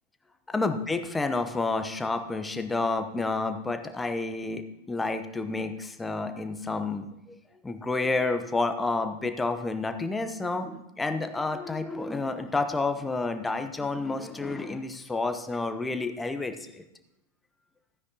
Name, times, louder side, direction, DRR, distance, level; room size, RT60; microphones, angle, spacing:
voice 1, 0.5-7.4 7.6-16.8, left 3 dB, 10° left, 7 dB, 0.9 m, -30 dB
14.5 x 9.6 x 2.9 m, 0.89 s
figure-of-eight pair, 90°, 0 cm